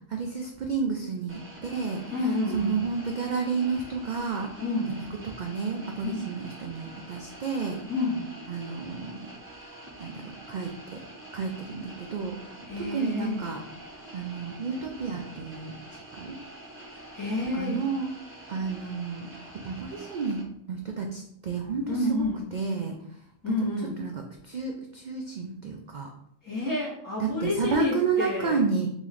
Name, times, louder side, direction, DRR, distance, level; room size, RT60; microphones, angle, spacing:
voice 1, 0.1-2.0 2.5-4.5 5.0-7.8 8.5-9.3 9.6-9.7 10.0-11.0 11.3-12.4 12.9-13.6 14.1-15.8 16.2-16.4 17.6-18.1 18.5-19.3 19.5-20.4 20.7-21.9 22.5-23.0 23.5-23.6 24.0-24.1 24.4-26.1 27.2-28.9, right 5 dB, 80° right, 2 dB, 0.4 m, -31 dB
sound 1, 1.3-20.4, right 1 dB, 15° right, 0.6 m, -46 dB
voice 2, 2.1-2.8 4.6-4.9 6.0-6.2 7.9-8.3 12.6-13.4 16.9-17.8 21.9-22.4 23.4-23.9 26.4-28.6, left 2 dB, 15° left, -8 dB, 1.6 m, -29 dB
3.1 x 3.1 x 3.8 m, 0.73 s
omnidirectional pair, 1.3 m